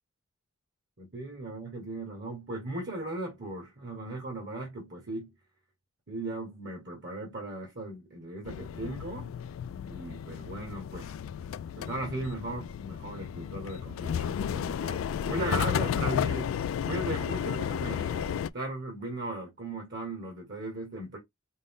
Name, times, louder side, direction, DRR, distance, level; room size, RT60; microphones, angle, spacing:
voice 1, 1.0-5.3 6.1-9.3 9.9-11.1 11.8-16.5 16.8-21.2, right 2 dB, 60° right, 1.6 m, -37 dB
sound 1, 8.5-18.5, left 8 dB, 85° left, 0.3 m, -33 dB
5.1 x 2.1 x 3.6 m
head